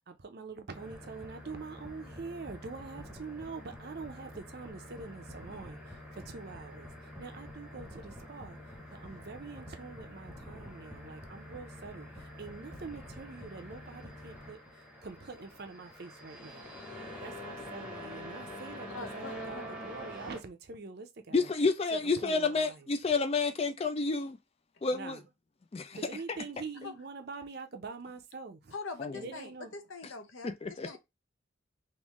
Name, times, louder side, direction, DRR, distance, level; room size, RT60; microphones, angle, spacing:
voice 1, 0.1-6.9 7.2-8.6 8.9-12.1 12.4-14.6 15.0-16.6 17.2-21.5 21.9-22.9 24.9-25.2 25.9-28.7 29.1-29.7, right 4 dB, 50° right, 0.6 m, -45 dB
sound 1, 0.7-20.4, equal, 5° right, 0.8 m, -46 dB
voice 2, 18.9-19.6 26.8-26.9 28.7-31.0, left 4 dB, 70° left, 0.7 m, -43 dB
voice 3, 21.3-24.4 24.8-25.2 25.7-26.0 29.0-29.1 30.4-31.0, left 4 dB, 30° left, 0.3 m, -30 dB
3.5 x 2.6 x 3.0 m
head